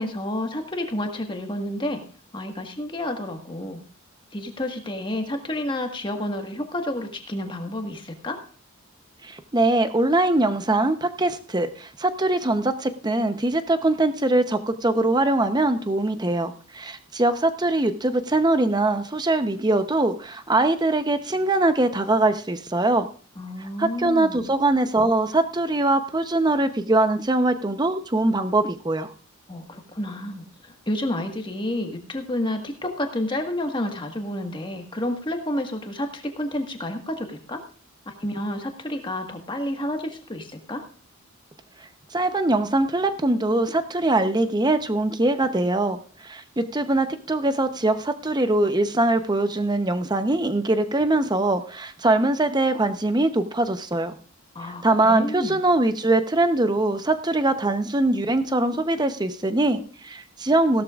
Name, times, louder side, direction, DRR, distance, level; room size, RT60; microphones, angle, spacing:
voice 1, 0.0-2.0 2.3-3.8 4.3-8.4 23.4-24.4 29.5-37.6 38.1-40.8 54.5-55.6, left 1 dB, 20° left, 4 dB, 1.6 m, -30 dB
voice 2, 9.2-23.1 23.8-29.1 42.1-54.2 54.6-60.8, right 2 dB, 20° right, 9 dB, 0.8 m, -22 dB
16.5 x 12.5 x 2.5 m, 0.41 s
head